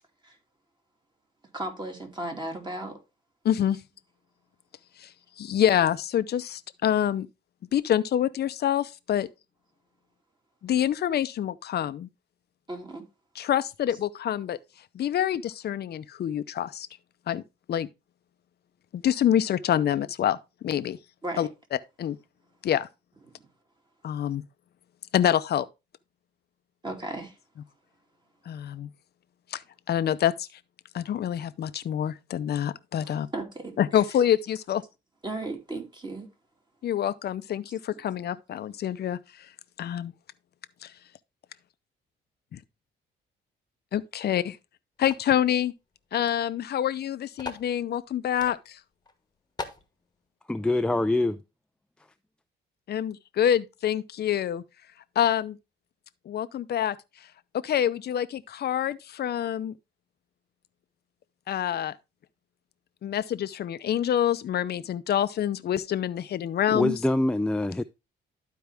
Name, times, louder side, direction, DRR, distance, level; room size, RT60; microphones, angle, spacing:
voice 1, 1.5-3.0 12.7-13.1 21.2-21.5 26.8-27.4 33.0-34.0 35.2-36.3, right 2 dB, 20° right, 2.7 m, -35 dB
voice 2, 3.4-3.8 5.0-5.1 5.4-7.3 7.7-9.3 10.6-12.1 13.4-14.6 14.9-16.9 17.3-17.4 17.7-17.9 18.9-21.0 21.4-21.5 22.0-22.2 22.6-22.9 24.0-24.4 25.1-25.7 28.5-28.9 29.5-29.6 29.9-30.5 30.9-33.3 33.8-34.8 36.8-39.2 39.8-40.1 40.8-40.9 43.9-44.6 45.0-45.7 46.1-48.8 52.9-54.6 55.2-55.6 56.3-57.0 57.6-59.7 61.5-62.0 63.0-66.9, left 10 dB, 55° left, 0.6 m, -26 dB
sound 1, 45.0-45.3 46.2-46.3 46.6-46.7 47.4-47.7 48.4-48.6 49.0-49.1 49.6-49.9, left 3 dB, 20° left, 1.3 m, -38 dB
voice 3, 50.5-51.4 66.7-67.8, left 1 dB, 5° left, 0.4 m, -25 dB
12.0 x 4.7 x 3.4 m
cardioid pair, 90°, 20 cm